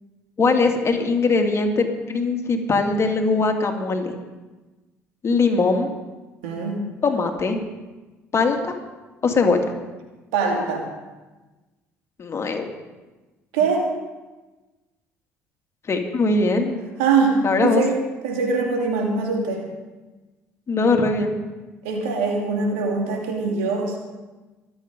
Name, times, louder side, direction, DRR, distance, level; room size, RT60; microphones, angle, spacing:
voice 1, 0.4-4.2 5.2-5.9 7.0-7.6 8.3-8.7 9.2-9.6 12.2-12.7 15.9-16.8 17.4-17.8 20.7-21.4, left 3 dB, 40° left, 4 dB, 2.4 m, -21 dB
voice 2, 6.4-6.9 10.3-10.9 13.5-14.0 17.0-19.7 21.8-24.0, right 4 dB, 75° right, 2 dB, 2.6 m, -23 dB
23.5 x 8.2 x 5.3 m, 1.2 s
hypercardioid pair, 55°, 7 cm